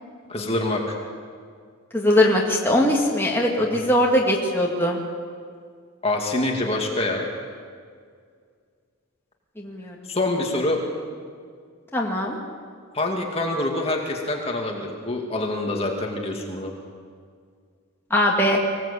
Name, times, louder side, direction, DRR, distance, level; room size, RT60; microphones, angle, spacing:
voice 1, 0.3-1.0 6.0-7.3 10.1-10.8 12.9-16.7, left 2 dB, 25° left, 1 dB, 2.4 m, -25 dB
voice 2, 1.9-5.0 9.6-10.0 11.9-12.4 18.1-18.6, left 1 dB, 10° left, -2 dB, 2.3 m, -20 dB
25.0 x 17.0 x 8.5 m, 2.1 s
head